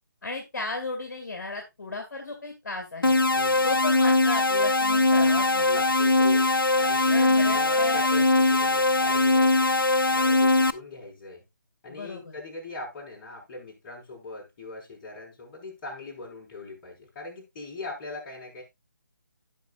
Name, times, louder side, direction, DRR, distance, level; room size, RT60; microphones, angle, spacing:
voice 1, 0.2-3.2 3.6-5.7 7.1-8.0 11.9-12.4, left 3 dB, 55° left, 2.6 m, -34 dB
sound 1, 3.0-10.7, left 2 dB, 85° left, 0.8 m, -21 dB
voice 2, 3.4-3.7 5.7-9.8 10.1-11.4 11.8-18.6, left 2 dB, 25° left, 5.6 m, -41 dB
16.0 x 6.1 x 2.5 m
figure-of-eight pair, 145°, 11 cm